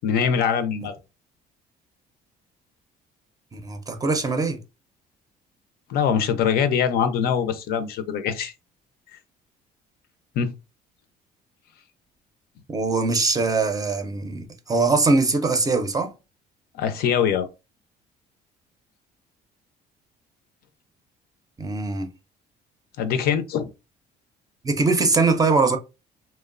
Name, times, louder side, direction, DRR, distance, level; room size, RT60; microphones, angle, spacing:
voice 1, 0.0-1.0 5.9-8.5 10.4-10.5 16.7-17.5 23.0-23.7, left 7 dB, 65° left, 0.4 m, -23 dB
voice 2, 3.5-4.6 12.7-16.1 21.6-22.1 24.6-25.8, right 3 dB, 20° right, 0.5 m, -22 dB
2.9 x 2.0 x 2.4 m
cardioid pair, 110°, 17 cm